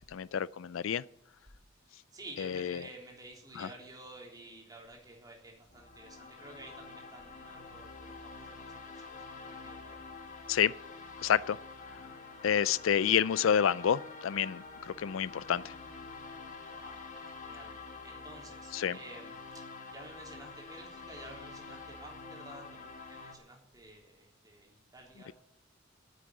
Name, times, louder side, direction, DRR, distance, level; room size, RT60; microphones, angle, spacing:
voice 1, 0.1-1.0 2.6-2.7 3.6-3.7 10.5-10.7 11.2-11.6 12.4-14.6 15.0-15.6 18.7-19.0, left 8 dB, 90° left, 0.4 m, -28 dB
voice 2, 1.9-10.0 16.8-17.7 18.0-19.4 19.9-25.3, right 2 dB, 20° right, 3.6 m, -52 dB
sound 1, 5.7-23.4, left 4 dB, 40° left, 1.9 m, -47 dB
10.0 x 8.4 x 9.4 m
head